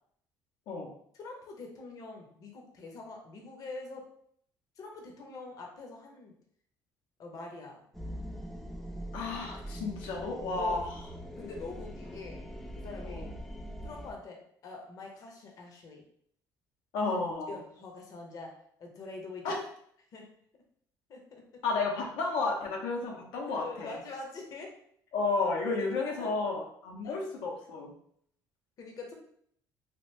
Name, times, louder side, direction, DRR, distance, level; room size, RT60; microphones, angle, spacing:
voice 1, 1.1-4.0 4.8-6.3 7.2-7.8 10.6-10.8 11.4-12.4 12.7-13.2 13.8-14.4 14.6-16.0 17.0-17.1 17.5-18.5 18.8-19.4 20.1-20.3 21.1-21.4 23.5-24.7 26.1-26.3 27.0-27.1 28.8-29.1, left 3 dB, 50° left, 1 dB, 0.7 m, -44 dB
sound 1, 7.9-14.1, equal, 5° left, 0.4 m, -42 dB
voice 2, 9.1-10.9 13.1-13.3 16.9-17.6 19.4-19.6 21.6-24.0 25.1-27.9, left 3 dB, 85° left, -1 dB, 0.7 m, -32 dB
2.9 x 2.5 x 3.2 m, 0.66 s
cardioid pair, 115°, 8 cm